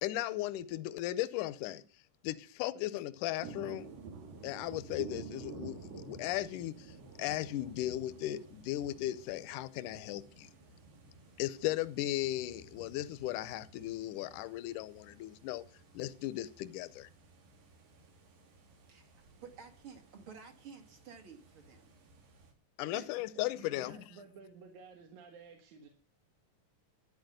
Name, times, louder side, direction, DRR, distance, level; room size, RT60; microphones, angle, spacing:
voice 1, 0.0-1.8 2.2-3.9 4.4-10.5 11.4-15.6 15.9-17.1 22.8-23.9, left 15 dB, 75° left, 2.2 m, -36 dB
sound 1, 3.4-22.5, right 5 dB, 85° right, 4.2 m, -52 dB
voice 2, 18.9-21.9 22.9-23.3, right 6 dB, 45° right, 2.4 m, -52 dB
voice 3, 23.4-25.9, right 5 dB, 65° right, 2.8 m, -53 dB
13.0 x 9.4 x 7.8 m
omnidirectional pair, 3.8 m